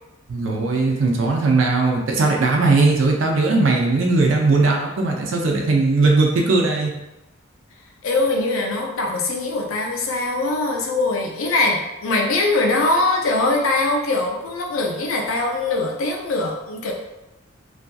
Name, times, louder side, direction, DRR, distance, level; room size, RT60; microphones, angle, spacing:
voice 1, 0.3-6.9, right 3 dB, 70° right, 0 dB, 0.5 m, -18 dB
voice 2, 8.0-16.9, left 2 dB, 85° left, 0 dB, 0.5 m, -22 dB
2.6 x 2.4 x 2.2 m, 0.97 s
head